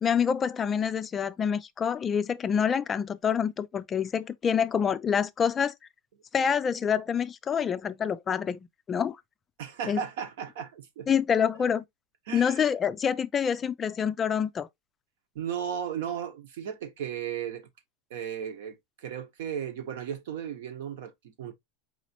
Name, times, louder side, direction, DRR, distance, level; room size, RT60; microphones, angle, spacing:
voice 1, 0.0-5.7 6.3-8.6 8.9-9.2 9.9-10.0 11.1-11.8 12.3-14.7, left 7 dB, 20° left, 0.3 m, -26 dB
voice 2, 9.6-11.1 11.6-11.7 12.3-12.7 15.3-17.7 18.1-21.5, right 8 dB, 75° right, 1.1 m, -35 dB
4.8 x 3.0 x 2.8 m
supercardioid pair, 145°, 0 cm